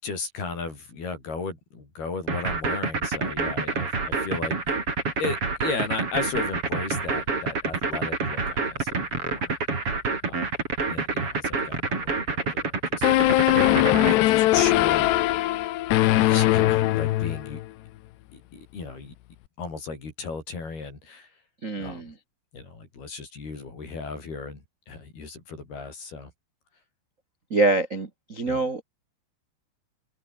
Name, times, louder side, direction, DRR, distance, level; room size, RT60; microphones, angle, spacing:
voice 1, 0.0-4.6 5.2-9.8 10.2-10.5 10.9-15.1 16.1-17.6 18.3-19.1 19.6-21.3 21.8-22.1 22.5-26.3 28.4-28.7, left 4 dB, 60° left, 9.7 m, -35 dB
sound 1, 2.3-14.1, right 4 dB, 30° right, 5.1 m, -27 dB
sound 2, 13.0-17.7, left 16 dB, 80° left, 3.2 m, -21 dB
voice 2, 21.6-22.1 27.5-28.8, right 2 dB, 85° right, 0.7 m, -25 dB
open air
omnidirectional pair, 5.0 m